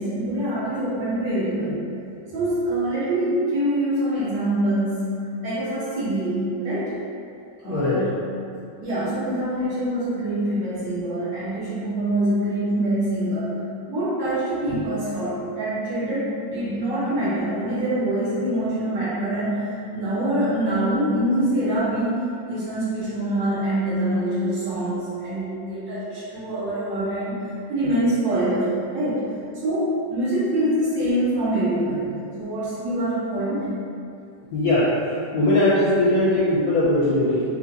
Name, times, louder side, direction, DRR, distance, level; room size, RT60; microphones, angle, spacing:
voice 1, 0.0-1.8 2.3-5.2 5.4-6.9 7.6-8.2 8.8-13.5 13.9-19.6 19.9-22.1 22.5-29.3 29.6-33.7, right 1 dB, 65° right, -11 dB, 1.8 m, -25 dB
voice 2, 7.6-8.0 34.5-34.9 35.3-37.6, left 1 dB, 70° left, -9 dB, 0.9 m, -20 dB
4.3 x 2.6 x 2.6 m, 2.4 s
omnidirectional pair, 2.1 m